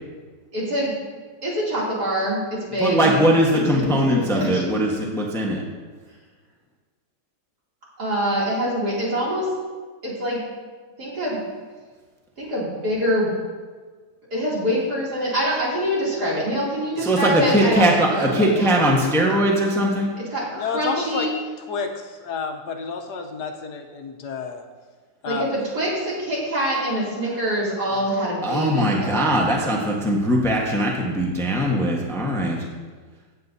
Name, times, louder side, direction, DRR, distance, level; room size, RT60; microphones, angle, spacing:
voice 1, 0.5-0.9 1.4-3.1 3.5-4.6 8.0-9.5 10.0-10.4 11.0-11.4 12.4-13.3 14.3-18.7 19.1-19.3 20.1-21.3 25.2-25.5 25.7-29.4, equal, 65° right, -7 dB, 3.4 m, -25 dB
voice 2, 2.8-5.6 17.0-20.1 28.4-32.6, equal, ahead, -1 dB, 1.0 m, -20 dB
voice 3, 20.5-21.3 21.6-24.6 25.2-25.5 27.9-28.0, left 5 dB, 70° left, 4 dB, 1.4 m, -30 dB
16.0 x 8.1 x 2.7 m, 1.4 s
omnidirectional pair, 1.9 m